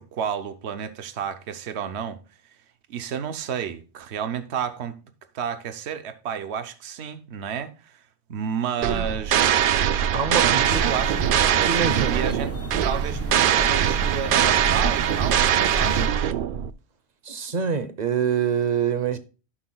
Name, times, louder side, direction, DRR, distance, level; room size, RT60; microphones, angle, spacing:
voice 1, 0.0-2.2 2.9-5.0 5.3-8.0 8.3-12.5 12.8-16.3, right 7 dB, 75° right, 1.0 m, -31 dB
voice 2, 8.8-9.1 10.1-10.8 11.7-12.3 17.2-19.2, right 7 dB, 45° right, 0.9 m, -25 dB
sound 1, 8.8-16.7, right 9 dB, 60° right, 0.6 m, -22 dB
sound 2, 10.7-16.1, equal, 15° left, 1.2 m, -34 dB
17.0 x 5.8 x 2.3 m
omnidirectional pair, 1.1 m